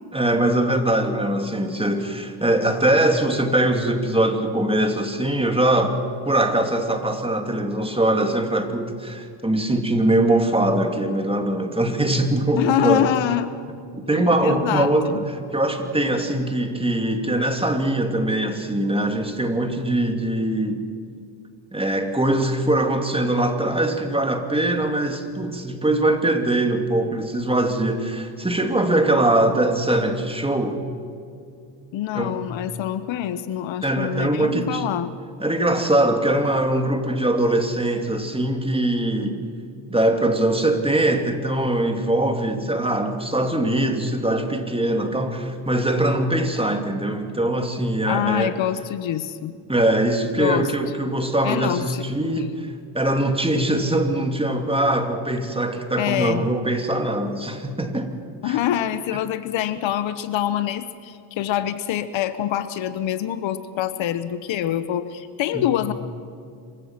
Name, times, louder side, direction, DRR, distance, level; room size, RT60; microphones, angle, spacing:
voice 1, 0.1-6.0 6.2-13.1 13.9-20.8 21.7-30.8 32.1-32.4 33.8-34.9 35.4-39.4 39.9-48.5 49.7-58.1 58.4-58.6 59.1-59.2 65.5-65.6, right 1 dB, 10° right, 5 dB, 2.8 m, -22 dB
voice 2, 12.6-13.5 14.4-15.2 31.9-35.1 48.1-49.6 50.4-50.7 51.4-52.1 52.3-52.4 56.0-56.4 58.4-65.9, left 11 dB, 70° left, 13 dB, 1.2 m, -25 dB
26.5 x 16.0 x 6.1 m, 2.4 s
supercardioid pair, 80°, 48 cm